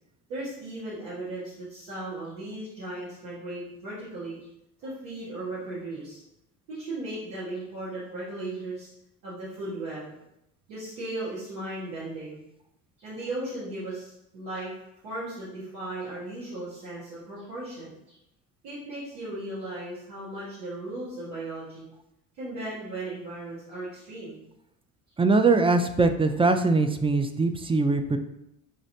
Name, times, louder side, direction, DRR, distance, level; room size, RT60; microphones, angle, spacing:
voice 1, 0.3-4.4 4.8-6.2 6.7-8.9 9.2-10.1 10.7-12.4 13.0-14.7 15.0-18.2 18.6-21.9 22.3-24.4, right 2 dB, 85° right, -10 dB, 1.6 m, -36 dB
voice 2, 25.2-28.2, right 3 dB, 15° right, 7 dB, 0.4 m, -22 dB
5.9 x 3.1 x 2.7 m, 0.82 s
hypercardioid pair, 70°, 40 cm